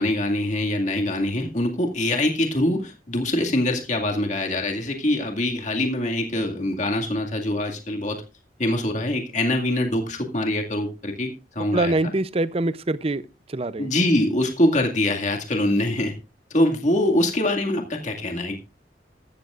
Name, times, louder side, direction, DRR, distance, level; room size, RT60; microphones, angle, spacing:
voice 1, 0.0-8.2 8.6-11.9 13.8-16.1 16.5-18.6, left 1 dB, 40° left, 2.1 m, -24 dB
voice 2, 11.7-13.2 13.5-13.9, right 2 dB, 35° right, 0.6 m, -24 dB
14.5 x 13.5 x 2.5 m
head